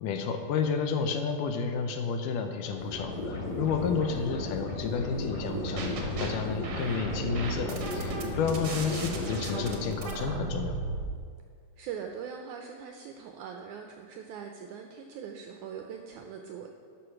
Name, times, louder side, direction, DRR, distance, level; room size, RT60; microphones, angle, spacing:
voice 1, 0.0-10.8, left 6 dB, 80° left, 6 dB, 2.1 m, -31 dB
sound 1, 2.6-9.9, left 2 dB, 60° left, 2.6 m, -35 dB
sound 2, 5.4-6.3 6.6-11.0, right 4 dB, 65° right, 1.3 m, -36 dB
voice 2, 11.8-16.7, right 7 dB, 85° right, 4 dB, 1.7 m, -41 dB
11.5 x 6.3 x 6.0 m, 2.1 s
omnidirectional pair, 4.0 m